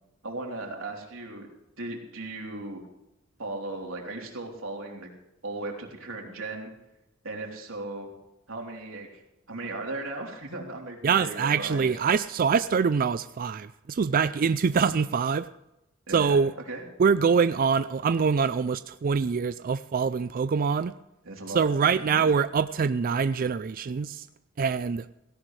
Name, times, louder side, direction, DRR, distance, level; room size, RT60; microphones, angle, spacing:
voice 1, 0.2-1.5 1.8-2.8 3.4-5.1 5.4-6.7 7.2-8.1 8.5-9.2 9.5-11.9 16.1-16.4 16.7-16.8 21.2-21.7 22.2-22.3, right 2 dB, 90° right, 0 dB, 3.4 m, -36 dB
voice 2, 11.0-15.5 16.1-16.5 17.0-20.9 21.5-24.3 24.6-25.1, right 6 dB, 45° right, 13 dB, 0.4 m, -24 dB
17.5 x 17.0 x 3.2 m, 0.91 s
head